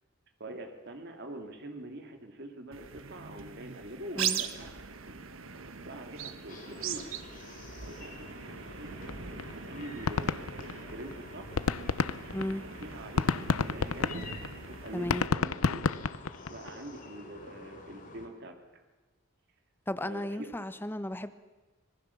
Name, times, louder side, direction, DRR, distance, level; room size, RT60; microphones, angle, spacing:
voice 1, 0.4-4.7 5.1-5.2 5.7-7.1 7.8-8.2 8.8-9.1 9.5-11.6 12.8-14.3 14.7-15.8 16.5-18.8 20.0-20.5, right 1 dB, 50° right, 5 dB, 2.6 m, -44 dB
sound 1, 2.7-15.3, right 7 dB, 70° right, 1.2 m, -41 dB
sound 2, 6.5-18.3, left 3 dB, 40° left, 3.3 m, -49 dB
sound 3, 9.1-9.2 9.4-9.5 9.8-11.1 11.4-16.7, left 5 dB, 80° left, 0.7 m, -30 dB
voice 2, 12.3-12.6 14.9-15.3 19.9-21.3, left 1 dB, 10° left, 12 dB, 0.8 m, -34 dB
26.0 x 19.5 x 7.1 m, 1.2 s
head